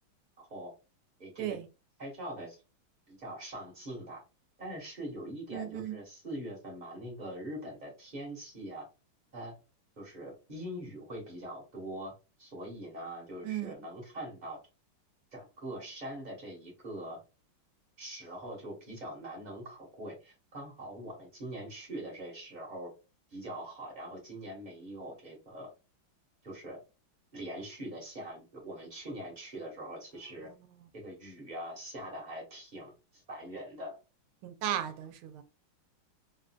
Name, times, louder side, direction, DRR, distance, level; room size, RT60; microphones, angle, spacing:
voice 1, 0.4-0.7 1.2-1.6 2.0-2.6 3.1-4.2 4.6-8.9 9.3-9.5 10.0-12.1 12.4-14.6 15.3-17.2 18.0-22.9 23.3-25.7 26.4-26.8 27.3-30.5 30.9-34.0, right 1 dB, 25° right, 1.0 m, -43 dB
voice 2, 5.5-6.0 13.4-13.8 30.4-30.5 34.4-35.4, right 11 dB, 90° right, 1.5 m, -36 dB
3.7 x 2.5 x 2.2 m
omnidirectional pair, 2.3 m